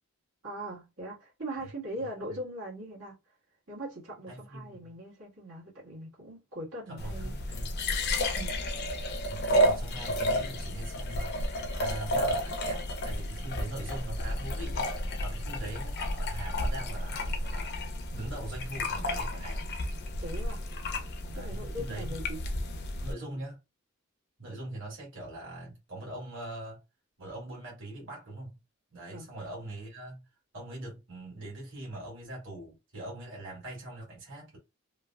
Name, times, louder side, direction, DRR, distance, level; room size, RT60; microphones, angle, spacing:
voice 1, 0.4-3.1 3.7-7.3 8.3-8.6 20.2-20.6 21.3-22.4 29.1-29.3, right 1 dB, 90° right, 1.7 m, -40 dB
voice 2, 4.3-4.9 6.9-7.8 9.3-11.3 11.7-14.9 15.2-17.8 18.1-19.7 21.3-22.1 23.0-23.6 24.4-26.8 27.2-28.5 28.9-30.3 30.5-34.6, right 1 dB, 60° right, 1.7 m, -42 dB
sound 1, 7.0-23.1, equal, 50° left, 0.5 m, -32 dB
3.1 x 2.4 x 2.3 m
head